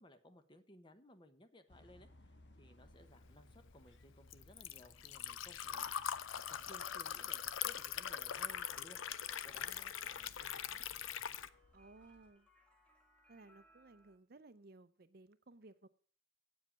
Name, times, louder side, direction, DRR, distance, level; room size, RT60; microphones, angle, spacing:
voice 1, 0.0-6.1 6.3-9.0 9.4-10.8, left 1 dB, 25° left, 10 dB, 0.9 m, -61 dB
sound 1, 1.7-12.3, left 1 dB, 65° left, 1.4 m, -65 dB
Liquid, 3.2-11.5, left 9 dB, 90° left, 0.6 m, -42 dB
sound 2, 8.9-14.2, equal, 5° left, 1.5 m, -68 dB
voice 2, 11.7-12.5 13.3-15.9, right 2 dB, 50° right, 13 dB, 0.6 m, -59 dB
8.7 x 7.6 x 7.1 m, 0.43 s
head